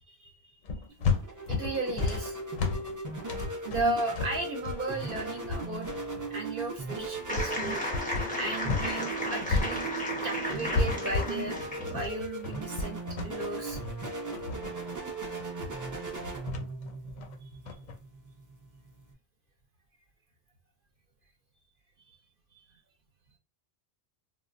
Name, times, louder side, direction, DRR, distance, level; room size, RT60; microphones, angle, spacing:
voice 1, 0.1-0.6 1.5-2.4 3.6-5.9 6.3-7.9 8.3-9.9 10.2-13.8 22.0-22.1 22.5-22.7, right 2 dB, 60° right, 2 dB, 0.8 m, -35 dB
sound 1, 0.7-8.9 9.2-18.0, left 4 dB, 55° left, 0.5 m, -33 dB
sound 2, 0.9-19.1, right 3 dB, 25° right, 0.4 m, -38 dB
sound 3, 7.3-12.0, left 1 dB, 10° left, 0.7 m, -34 dB
3.7 x 2.0 x 2.5 m, 0.33 s
omnidirectional pair, 1.1 m